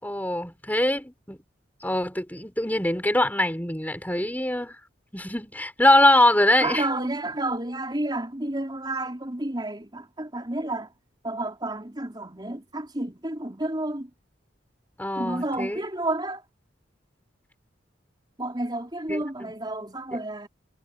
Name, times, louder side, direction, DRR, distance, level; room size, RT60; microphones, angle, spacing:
voice 1, 0.0-1.4 1.8-4.8 5.1-6.8 15.0-15.8 19.1-19.5, left 1 dB, 10° left, 5.7 m, -23 dB
voice 2, 6.6-10.9 11.2-14.1 15.1-16.4 18.4-20.5, right 2 dB, 25° right, 4.2 m, -30 dB
head